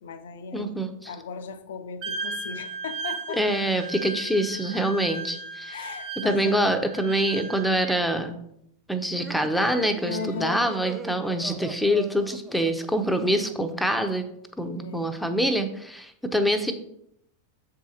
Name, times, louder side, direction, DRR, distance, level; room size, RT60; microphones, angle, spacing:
voice 1, 0.0-3.4 5.7-6.7 10.0-10.7 14.8-15.2, left 5 dB, 60° left, 11 dB, 0.6 m, -36 dB
voice 2, 0.5-1.1 3.3-5.8 6.2-8.4 8.9-14.2 14.6-16.7, equal, ahead, 6 dB, 0.8 m, -25 dB
Wind instrument woodwind instrument, 2.0-8.0, right 3 dB, 40° right, 0.9 m, -36 dB
sound 1, 9.1-13.7, right 6 dB, 20° right, 0.4 m, -41 dB
7.5 x 4.7 x 4.3 m, 0.75 s
figure-of-eight pair, 90°, 0 cm